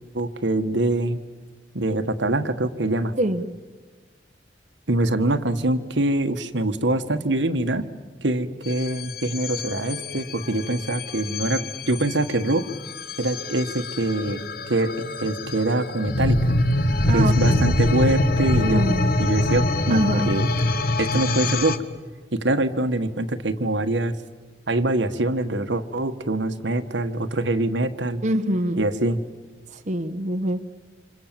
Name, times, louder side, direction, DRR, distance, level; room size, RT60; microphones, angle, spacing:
voice 1, 0.1-1.2 1.7-3.1 4.9-7.9 8.2-12.6 13.2-14.4 14.7-16.6 17.1-18.9 19.2-20.5 21.0-21.8 22.3-24.1 24.7-28.2 28.8-29.2, right 2 dB, 80° right, 8 dB, 1.5 m, -24 dB
sound 1, 8.7-21.8, left 1 dB, 55° left, 1.3 m, -24 dB
voice 2, 17.1-17.6 18.6-19.1 19.9-20.3 28.2-28.8 29.7-30.6, right 1 dB, 40° right, 7 dB, 1.0 m, -24 dB
28.0 x 26.5 x 7.5 m, 1.3 s
head